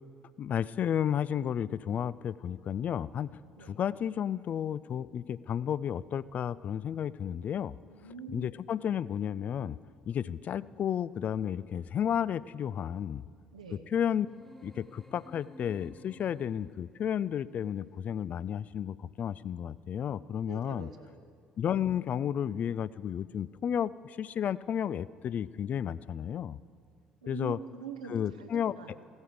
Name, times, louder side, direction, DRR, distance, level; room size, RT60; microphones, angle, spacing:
voice 1, 0.4-7.7 8.3-9.8 10.1-13.2 13.7-14.3 14.6-20.9 21.6-26.6 27.3-27.6 28.1-29.0, left 9 dB, 45° left, 20 dB, 0.3 m, -32 dB
voice 2, 7.9-8.5 13.5-13.8 20.5-21.4 27.2-29.0, right 6 dB, 80° right, 6 dB, 0.9 m, -45 dB
sound 1, 14.3-16.9, left 1 dB, 10° left, 1.2 m, -53 dB
16.0 x 12.5 x 5.0 m, 2.2 s
figure-of-eight pair, 50°, 4 cm